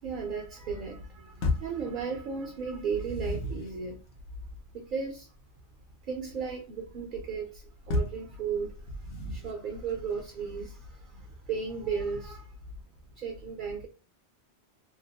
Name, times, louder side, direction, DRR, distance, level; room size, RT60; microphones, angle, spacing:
voice 1, 0.0-4.0 4.7-5.3 6.0-12.7 13.1-13.9, right 5 dB, 55° right, 0.6 m, -35 dB
sound 1, 1.4-1.8 2.7-3.8 7.9-8.3 8.9-9.6, left 2 dB, 85° left, 1.0 m, -32 dB
2.8 x 2.1 x 2.7 m
omnidirectional pair, 1.2 m